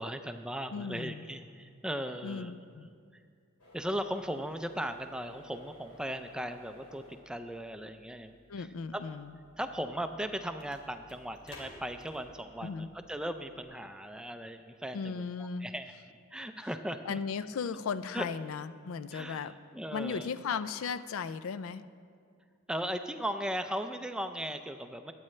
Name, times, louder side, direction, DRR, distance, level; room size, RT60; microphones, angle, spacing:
voice 1, 0.0-2.5 3.1-3.2 3.7-8.7 8.9-9.0 9.6-15.9 16.3-17.2 18.1-18.3 19.1-20.3 22.7-25.1, equal, 5° right, 8 dB, 0.4 m, -37 dB
voice 2, 0.7-1.3 2.2-2.9 8.5-9.4 12.6-12.9 14.9-15.7 16.6-16.7 17.1-19.6 19.9-21.8, left 5 dB, 70° left, 14 dB, 0.4 m, -36 dB
sound 1, 3.6-13.7, left 1 dB, 85° left, 2.7 m, -56 dB
21.0 x 8.6 x 3.2 m, 2.2 s
head